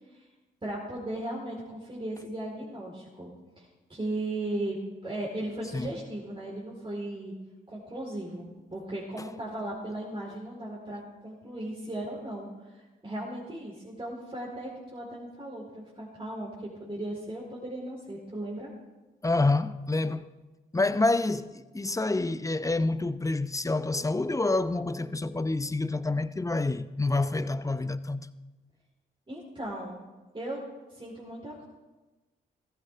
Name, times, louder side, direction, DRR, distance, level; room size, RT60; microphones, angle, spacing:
voice 1, 0.6-4.8 5.0-7.3 7.7-16.5 16.8-18.7 29.3-30.0 30.3-30.6 30.9-31.6, right 1 dB, 25° right, 4.4 m, -37 dB
voice 2, 19.2-20.3 20.7-28.3, left 2 dB, 15° left, 0.8 m, -28 dB
15.5 x 14.5 x 3.7 m
hypercardioid pair, 45°, 21 cm